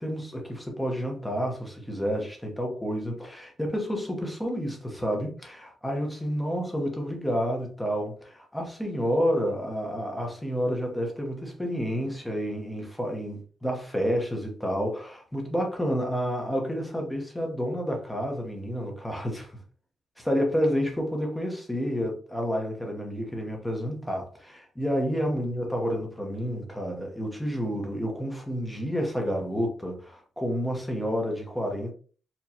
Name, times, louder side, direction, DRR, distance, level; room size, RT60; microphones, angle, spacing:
voice 1, 0.0-19.6 20.2-31.9, equal, 5° left, 0.9 m, -30 dB
4.3 x 3.1 x 2.8 m
wide cardioid pair, 160°, 0 cm